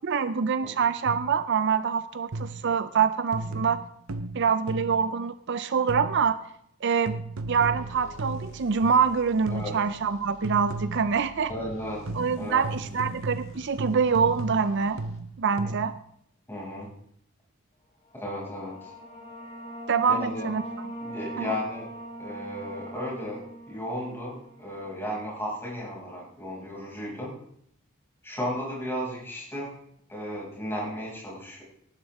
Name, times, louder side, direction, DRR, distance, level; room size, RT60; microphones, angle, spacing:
voice 1, 0.0-3.8 4.3-6.4 6.8-7.2 7.5-11.5 12.1-15.0 15.4-15.9 19.9-20.9 21.4-21.6, right 6 dB, 55° right, 13 dB, 0.5 m, -25 dB
sound 1, 1.1-1.4 2.3-2.8 3.3-5.1 5.9-6.4 7.1-9.1 9.5-10.0 10.4-11.2 12.1-16.0, right 2 dB, 80° right, 0.8 m, -35 dB
sound 2, 7.5-15.5, left 1 dB, 65° left, 1.9 m, -48 dB
voice 2, 11.5-12.0 12.4-12.6 16.5-16.9 18.1-18.9 20.2-20.4 21.0-21.9 22.2-27.3 28.2-29.7 30.1-31.6, equal, 10° left, -5 dB, 6.3 m, -34 dB
sound 3, 18.1-25.4, right 1 dB, 25° left, 2.3 m, -41 dB
18.5 x 11.5 x 3.6 m, 0.69 s
head